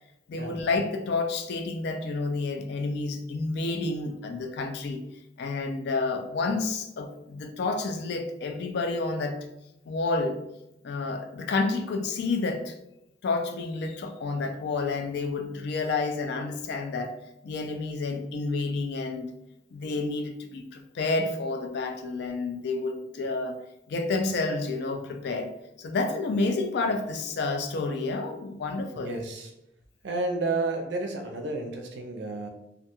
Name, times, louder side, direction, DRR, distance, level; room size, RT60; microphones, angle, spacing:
voice 1, 0.3-5.0 5.4-9.4 9.9-10.4 10.8-12.8 13.2-17.1 17.4-19.3 19.7-23.6 23.9-25.5 25.8-29.1, left 3 dB, 65° left, 5 dB, 0.3 m, -29 dB
voice 2, 28.9-29.5 30.0-32.5, right 3 dB, 70° right, 3 dB, 0.5 m, -31 dB
2.3 x 2.2 x 2.9 m, 0.87 s
head